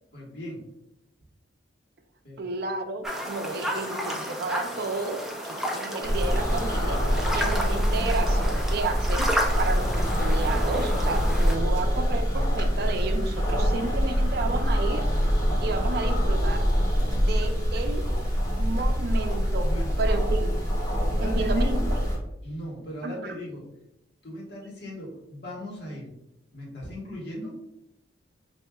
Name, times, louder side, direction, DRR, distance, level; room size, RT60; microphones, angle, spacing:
voice 1, 0.1-0.7 2.2-2.5 19.6-20.0 21.1-21.9 22.4-23.7 24.2-26.1 26.5-27.6, equal, 65° left, -3 dB, 1.4 m, -38 dB
voice 2, 2.4-7.0 7.3-9.3 9.6-15.1 15.6-16.6 17.1-18.0 18.6-19.7 20.0-20.5 21.2-22.1 23.0-23.3, right 3 dB, 60° right, 6 dB, 0.5 m, -32 dB
sound 1, 3.0-11.6, equal, ahead, 0.5 m, -32 dB
sound 2, 6.0-22.2, equal, 20° left, 1.3 m, -25 dB
5.5 x 2.7 x 2.2 m, 0.83 s
head